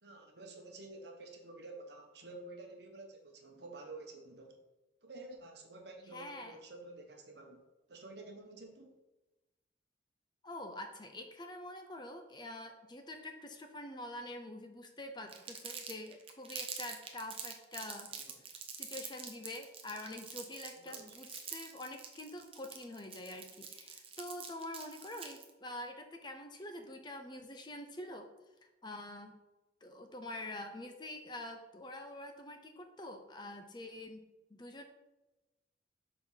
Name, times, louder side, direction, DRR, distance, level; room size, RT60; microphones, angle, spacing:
voice 1, 0.0-4.6 5.0-7.6 7.9-9.0 18.3-18.4 20.7-21.0, right 2 dB, 60° right, 3 dB, 1.1 m, -50 dB
voice 2, 6.1-6.6 10.4-18.1 18.5-28.3 28.6-29.4 29.8-34.3 34.5-34.8, left 1 dB, 25° left, 5 dB, 0.6 m, -46 dB
Crumpling crinkling, 15.3-25.5, right 7 dB, 30° right, 0.8 m, -46 dB
6.9 x 4.0 x 5.6 m, 1.1 s
head